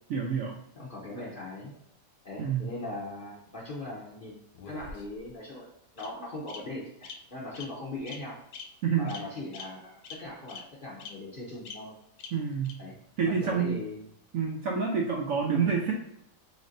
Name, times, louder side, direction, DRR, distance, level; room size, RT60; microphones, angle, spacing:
voice 1, 0.1-0.6 2.4-2.6 8.8-9.1 12.3-12.8 13.2-13.8 14.3-15.9, right 6 dB, 70° right, 0 dB, 0.8 m, -28 dB
voice 2, 0.8-1.7 2.2-5.7 5.9-8.4 9.0-12.0 12.8-13.0 13.3-14.0 15.5-15.7, left 2 dB, 50° left, -6 dB, 0.6 m, -40 dB
Bird vocalization bird call bird song, 4.6-5.3 6.0-6.1 6.5-6.6 7.0-7.1 7.5-7.7 8.1-8.2 8.5-8.6 9.1-9.2 9.5-9.6 10.0-10.1 10.5-10.6 11.0-11.1 11.7-11.8 12.2-12.3 12.6-12.7, left 6 dB, 90° left, 1.2 m, -43 dB
4.2 x 3.1 x 2.5 m, 0.78 s
omnidirectional pair, 1.9 m